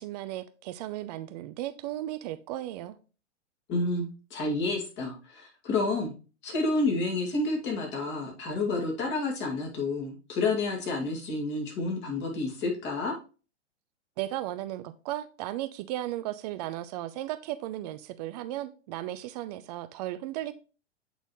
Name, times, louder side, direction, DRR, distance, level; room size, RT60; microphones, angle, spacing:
voice 1, 0.0-3.0 14.2-20.5, right 14 dB, 35° right, 0.5 m, -35 dB
voice 2, 3.7-6.1 6.4-13.2, left 3 dB, 30° left, 2.3 m, -30 dB
8.4 x 4.0 x 3.1 m
figure-of-eight pair, 105°, 36 cm